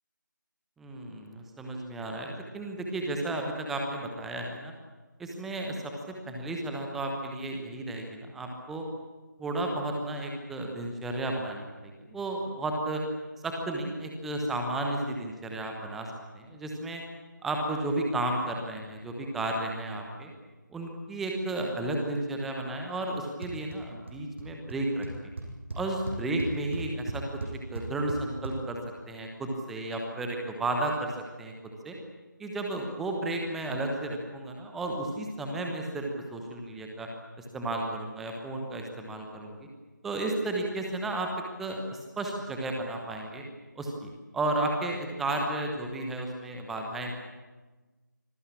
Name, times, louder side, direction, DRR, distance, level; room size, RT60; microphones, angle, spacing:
voice 1, 0.8-4.7 5.2-5.9 6.3-8.8 9.4-13.0 13.4-16.1 16.3-17.0 17.4-20.3 20.7-25.1 25.7-27.2 27.7-28.8 29.1-31.1 31.4-31.5 31.8-31.9 32.4-37.1 37.5-39.7 40.0-41.3 41.6-43.4 43.8-47.1, right 2 dB, ahead, 2 dB, 1.1 m, -33 dB
sound 1, 23.4-23.8 24.0-24.4 24.7-24.8 25.0-28.5, right 2 dB, 35° right, 6.9 m, -36 dB
25.5 x 19.5 x 8.6 m, 1.3 s
figure-of-eight pair, 165°, 11 cm